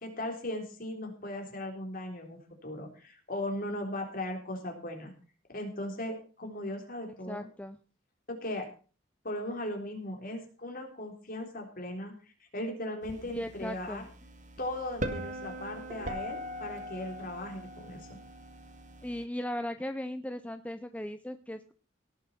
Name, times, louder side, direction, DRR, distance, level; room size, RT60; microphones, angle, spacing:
voice 1, 0.0-5.1 5.5-7.5 8.3-8.7 9.2-12.1 12.5-14.1 14.6-18.1, left 1 dB, 45° left, 3 dB, 3.8 m, -38 dB
voice 2, 7.2-7.8 13.3-14.1 19.0-21.7, left 1 dB, 5° left, 9 dB, 0.5 m, -37 dB
sound 1, 13.0-19.2, equal, 40° right, 1.7 m, -41 dB
17.5 x 7.4 x 5.8 m, 0.38 s
head